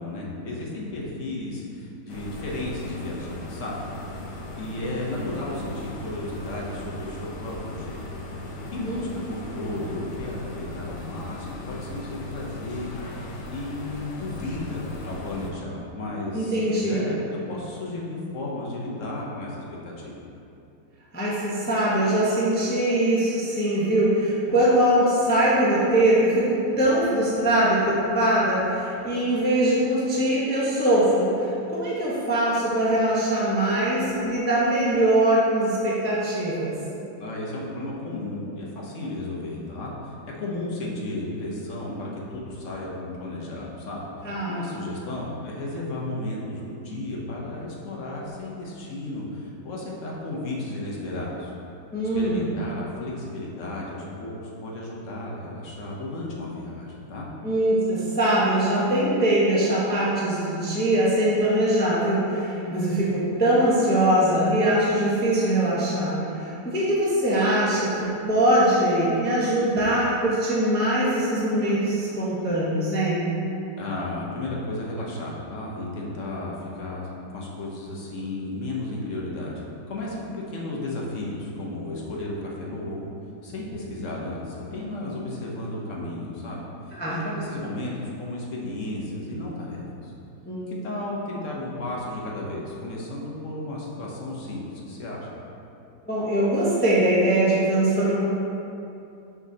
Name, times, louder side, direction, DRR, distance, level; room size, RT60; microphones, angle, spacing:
voice 1, 0.0-3.8 4.6-8.0 8.7-13.3 13.5-20.2 24.5-24.6 37.2-51.5 52.1-57.3 73.8-79.6 79.9-83.1 83.4-90.1 90.7-94.6 94.9-95.3, left 2 dB, 55° left, -4 dB, 1.0 m, -33 dB
sound 1, 2.1-15.5, left 1 dB, 85° left, 0.5 m, -38 dB
voice 2, 16.3-17.0 21.1-36.7 44.2-44.7 51.9-52.5 57.4-73.3 87.0-87.2 90.5-90.6 96.1-98.2, right 1 dB, 10° left, -7 dB, 0.4 m, -22 dB
6.0 x 6.0 x 2.8 m, 2.7 s
omnidirectional pair, 1.9 m